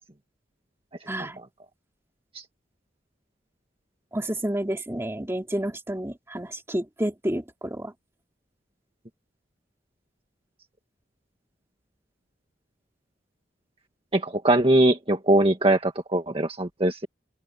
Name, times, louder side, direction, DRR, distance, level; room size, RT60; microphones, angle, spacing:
voice 1, 1.1-1.4 4.1-7.9, right 1 dB, 15° right, 2.5 m, -30 dB
voice 2, 14.1-17.1, right 1 dB, 30° right, 1.7 m, -21 dB
open air
head